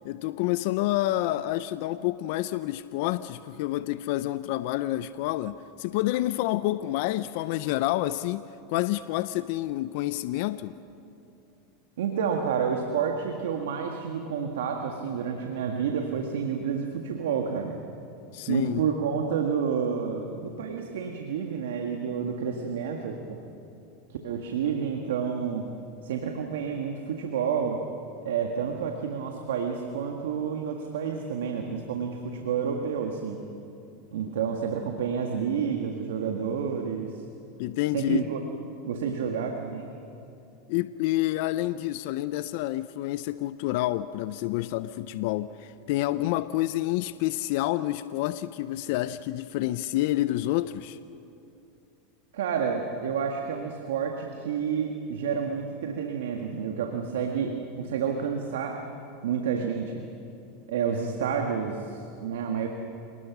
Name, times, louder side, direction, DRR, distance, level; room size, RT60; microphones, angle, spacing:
voice 1, 0.0-10.7 18.3-18.8 37.6-38.3 40.7-51.0, left 15 dB, 65° left, 14 dB, 0.6 m, -28 dB
voice 2, 12.0-17.8 18.5-23.4 24.1-25.7 26.0-27.9 28.3-33.4 34.1-37.2 37.9-38.4 38.9-39.9 52.3-58.9 59.2-60.1 60.7-62.7, right 7 dB, 85° right, 3 dB, 1.7 m, -29 dB
27.5 x 19.5 x 6.1 m, 2.8 s
hypercardioid pair, 110°, 0 cm